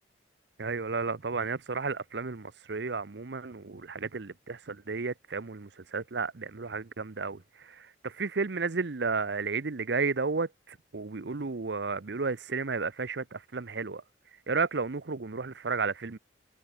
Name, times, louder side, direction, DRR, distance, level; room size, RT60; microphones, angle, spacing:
voice 1, 0.6-14.0 14.5-16.2, right 4 dB, 70° right, 0.8 m, -33 dB
head